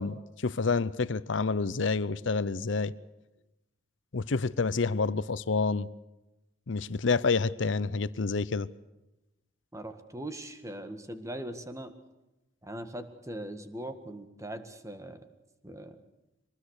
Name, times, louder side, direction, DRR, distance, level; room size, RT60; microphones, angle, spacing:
voice 1, 0.0-2.9 4.1-5.9 6.7-8.7, left 4 dB, 70° left, 0.7 m, -28 dB
voice 2, 9.7-11.9 12.6-15.2 15.6-16.0, right 1 dB, 15° right, 1.8 m, -40 dB
24.0 x 20.0 x 6.6 m
head